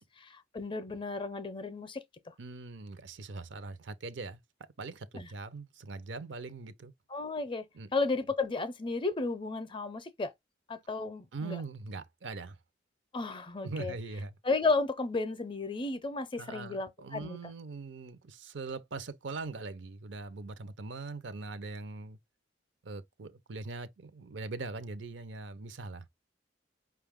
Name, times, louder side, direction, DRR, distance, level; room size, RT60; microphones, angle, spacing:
voice 1, 0.0-2.3 5.1-5.3 7.1-7.7 7.9-10.3 10.7-11.6 13.1-13.9 14.4-17.4, left 3 dB, 25° left, 0.5 m, -33 dB
voice 2, 2.4-4.4 4.8-6.9 7.7-7.9 11.3-12.6 13.6-14.4 16.4-22.2 22.8-26.1, right 3 dB, 70° right, 0.6 m, -41 dB
5.3 x 2.3 x 3.5 m
head